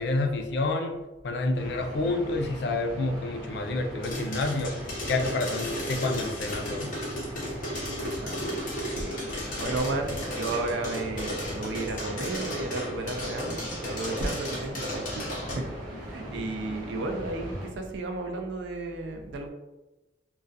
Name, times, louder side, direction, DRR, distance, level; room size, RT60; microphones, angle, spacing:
voice 1, 0.0-4.8 5.1-6.9, left 2 dB, 65° left, 5 dB, 0.3 m, -29 dB
sound 1, 1.6-17.7, equal, 45° right, 0.8 m, -40 dB
sound 2, 4.0-15.5, equal, 45° left, 0.7 m, -34 dB
voice 2, 8.0-8.6 8.9-19.5, right 2 dB, 80° right, 4 dB, 0.4 m, -33 dB
2.3 x 2.2 x 2.5 m, 1.0 s
head